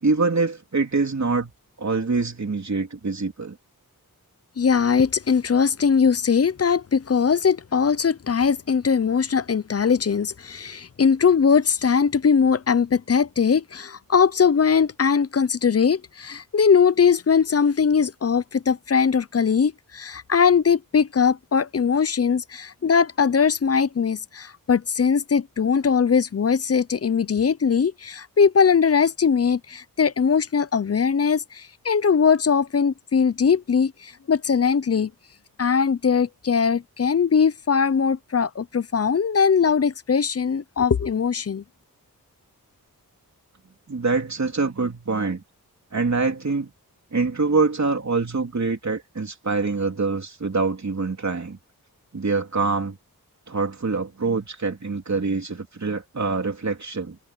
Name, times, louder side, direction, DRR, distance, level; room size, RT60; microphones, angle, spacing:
voice 1, 0.0-1.5 1.8-3.6 43.9-45.4 45.9-46.7 47.1-51.6 52.1-53.0 53.5-57.2, right 4 dB, 50° right, 3.4 m, -25 dB
voice 2, 4.6-35.1 35.6-41.6, left 6 dB, 40° left, 0.6 m, -20 dB
wide cardioid pair, 95°, 36 cm